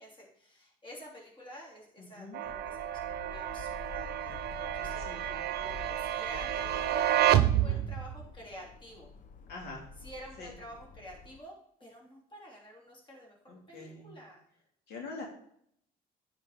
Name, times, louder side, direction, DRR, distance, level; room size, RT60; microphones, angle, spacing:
voice 1, 0.0-9.1 10.0-11.5 11.8-14.4, equal, 30° left, -2 dB, 3.5 m, -49 dB
voice 2, 2.0-2.4 5.1-5.3 7.5-7.9 9.5-9.8 10.4-10.5 13.5-14.1 14.9-15.2, left 3 dB, 75° left, -1 dB, 2.7 m, -44 dB
sound 1, 2.3-8.2, right 12 dB, 70° right, 0.7 m, -30 dB
sound 2, 2.4-11.4, left 5 dB, 50° left, 0.8 m, -48 dB
9.6 x 5.1 x 5.1 m, 0.67 s
cardioid pair, 110°, 17 cm